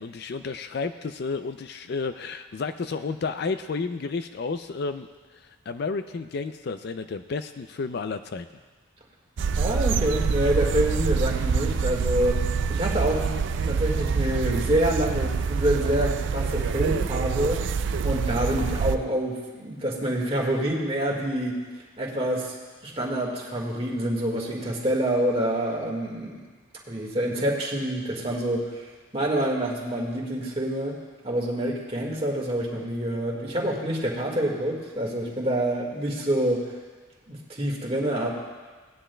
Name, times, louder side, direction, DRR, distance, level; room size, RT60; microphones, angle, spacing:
voice 1, 0.0-5.1 5.7-8.5, left 4 dB, 50° left, 10 dB, 0.4 m, -31 dB
sound 1, 9.4-19.0, right 5 dB, 60° right, 0.3 m, -26 dB
voice 2, 9.6-12.4 12.7-13.3 13.6-17.6 18.0-21.6 22.0-22.5 22.8-26.4 26.9-36.7 37.3-38.3, right 1 dB, 30° right, -1 dB, 1.7 m, -27 dB
18.5 x 10.0 x 2.2 m, 1.4 s
head